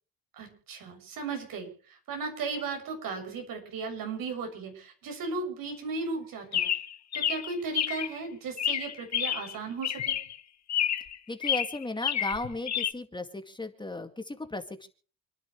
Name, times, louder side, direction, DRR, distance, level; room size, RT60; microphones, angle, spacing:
voice 1, 0.3-6.7 7.1-10.2, right 4 dB, 70° right, 4 dB, 7.1 m, -36 dB
Chirp tweet, 6.5-8.1 8.6-9.6 9.8-10.4 10.7-11.2 11.4-12.9, left 10 dB, 50° left, 1.5 m, -29 dB
voice 2, 11.3-14.9, left 2 dB, 15° left, 6 dB, 2.2 m, -35 dB
29.0 x 10.5 x 3.2 m, 0.41 s
cardioid pair, 105°, 35 cm